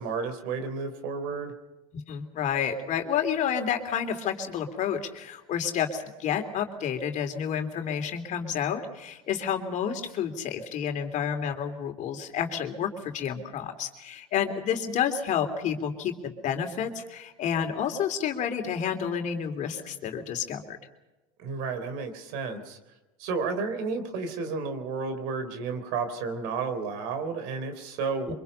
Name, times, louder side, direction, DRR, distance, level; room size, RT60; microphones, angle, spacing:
voice 1, 0.0-1.5 21.4-22.8 23.2-28.3, right 4 dB, 65° right, 9 dB, 3.9 m, -32 dB
voice 2, 2.1-20.8 28.3-28.4, left 8 dB, 45° left, 6 dB, 3.3 m, -30 dB
25.0 x 23.5 x 5.6 m, 1.1 s
supercardioid pair, 105°, 17 cm